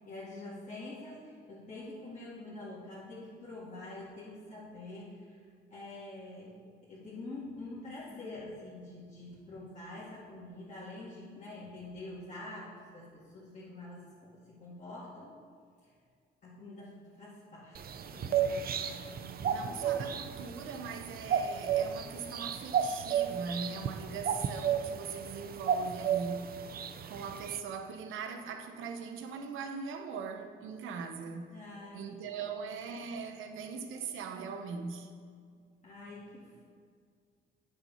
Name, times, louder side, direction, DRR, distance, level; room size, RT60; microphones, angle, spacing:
voice 1, 0.0-5.4 5.7-6.6 6.8-15.4 16.4-20.1 23.5-23.6 31.5-32.6 35.8-36.7, left 2 dB, 40° left, 2.3 m, -46 dB
sound 1, 17.7-27.6, right 8 dB, 50° right, 0.6 m, -33 dB
voice 2, 19.4-26.6 27.0-31.6 31.9-35.1, right 5 dB, 85° right, 0.9 m, -41 dB
8.4 x 6.9 x 5.6 m
cardioid pair, 90°, 20 cm